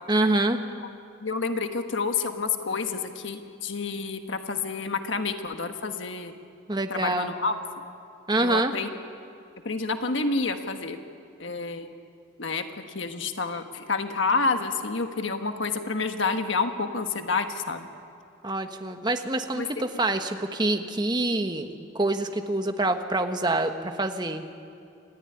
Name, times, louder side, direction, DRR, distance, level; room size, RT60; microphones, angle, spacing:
voice 1, 0.1-0.6 6.7-7.3 8.3-8.7 18.4-24.5, right 2 dB, 20° right, 6 dB, 1.2 m, -26 dB
voice 2, 1.2-6.3 6.9-7.6 8.4-8.9 9.6-11.0 11.4-11.9 12.4-12.6 12.9-17.9 19.5-19.7, left 4 dB, 70° left, 6 dB, 1.4 m, -29 dB
27.5 x 14.5 x 10.0 m, 2.5 s
head